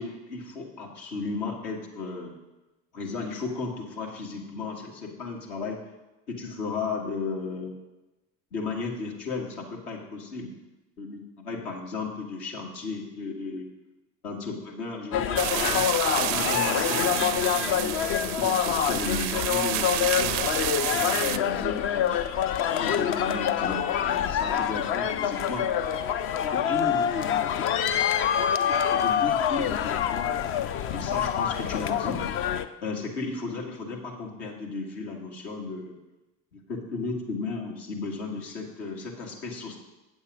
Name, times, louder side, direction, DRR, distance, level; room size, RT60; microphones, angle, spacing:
voice 1, 0.0-2.4 2.9-5.8 6.3-7.8 8.5-10.5 11.0-13.7 14.2-17.9 18.4-20.4 20.9-22.3 22.8-25.7 26.5-27.4 28.9-30.3 30.6-32.2 32.8-36.0 36.5-39.8, left 4 dB, 65° left, -1 dB, 1.8 m, -34 dB
sound 1, 15.1-32.7, left 9 dB, 30° left, 0.3 m, -26 dB
sound 2, 15.4-21.4, right 14 dB, 50° right, 0.5 m, -30 dB
8.4 x 7.2 x 4.9 m, 1.0 s
figure-of-eight pair, 60°, 49 cm